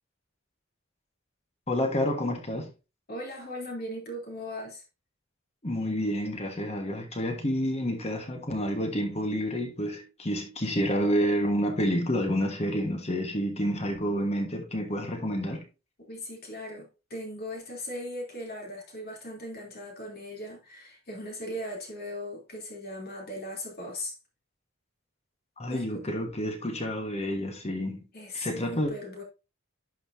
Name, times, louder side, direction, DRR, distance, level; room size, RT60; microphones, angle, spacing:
voice 1, 1.7-2.7 5.6-15.6 25.6-28.1 28.3-28.9, equal, 30° left, 1.4 m, -29 dB
voice 2, 3.1-4.8 16.1-24.2 25.7-26.0 28.1-29.2, left 1 dB, 45° left, 3.2 m, -38 dB
11.5 x 5.6 x 2.7 m
head